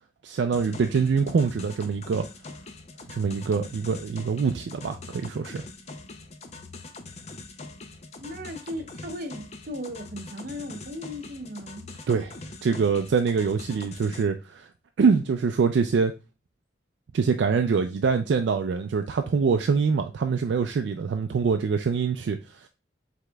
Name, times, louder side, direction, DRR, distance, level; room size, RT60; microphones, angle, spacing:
voice 1, 0.2-2.3 3.1-5.6 12.1-14.7 15.0-16.2 17.1-22.7, right 5 dB, 70° right, 0.3 m, -24 dB
sound 1, 0.5-14.2, left 3 dB, 35° left, 0.5 m, -43 dB
voice 2, 8.2-11.9, equal, 50° right, 0.7 m, -37 dB
4.9 x 3.6 x 2.2 m
head